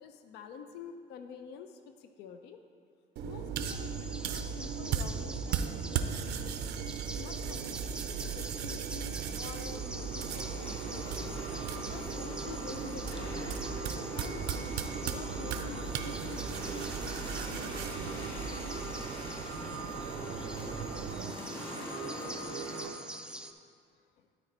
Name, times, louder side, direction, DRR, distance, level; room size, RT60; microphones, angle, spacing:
voice 1, 0.0-2.6 3.2-6.6 7.1-11.3 11.7-14.7 15.0-16.8 24.2-24.3, left 7 dB, 80° left, 8 dB, 0.5 m, -48 dB
sound 1, 3.2-21.3, right 7 dB, 80° right, 0.5 m, -37 dB
sound 2, 3.6-23.5, right 2 dB, 5° right, 0.4 m, -46 dB
sound 3, 9.1-22.9, right 1 dB, 30° left, 1.8 m, -42 dB
12.0 x 4.2 x 4.3 m, 2.2 s
cardioid pair, 110°, 17 cm